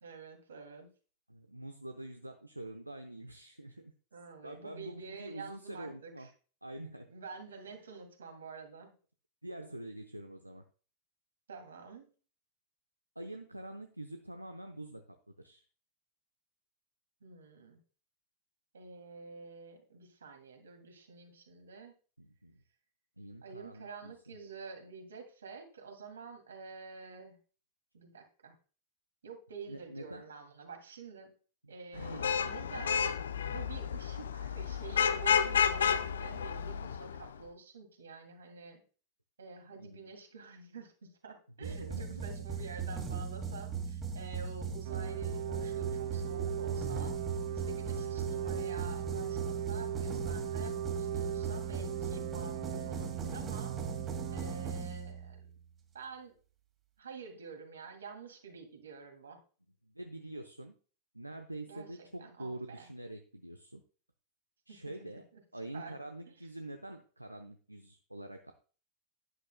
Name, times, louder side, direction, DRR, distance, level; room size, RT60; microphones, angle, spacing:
voice 1, 0.0-0.9 4.1-6.3 7.1-8.9 11.5-12.1 17.2-17.8 18.7-21.9 23.4-27.4 27.9-28.6 29.2-31.3 31.7-33.1 33.5-38.8 39.4-47.1 47.5-53.7 54.3-55.4 55.9-56.3 57.0-59.4 61.7-62.9 64.7-64.8 65.3-65.4 65.7-65.9, right 5 dB, 70° right, 5 dB, 2.5 m, -48 dB
voice 2, 1.3-3.9 4.4-6.3 6.6-7.1 9.4-10.6 13.2-15.6 22.2-22.6 23.2-24.4 29.7-30.2 31.6-32.3 39.8-40.1 41.6-42.2 59.8-60.8 61.1-63.8 64.7-65.3 65.5-68.5, right 1 dB, 85° right, 6 dB, 0.8 m, -46 dB
Vehicle horn car horn honking / Traffic noise roadway noise, 32.0-37.3, left 7 dB, 65° left, 0.6 m, -31 dB
sound 1, 41.6-55.5, right 5 dB, 25° right, 2.3 m, -38 dB
sound 2, 44.8-54.7, right 9 dB, 50° right, 0.8 m, -39 dB
11.5 x 11.0 x 2.2 m, 0.38 s
figure-of-eight pair, 90°, 0 cm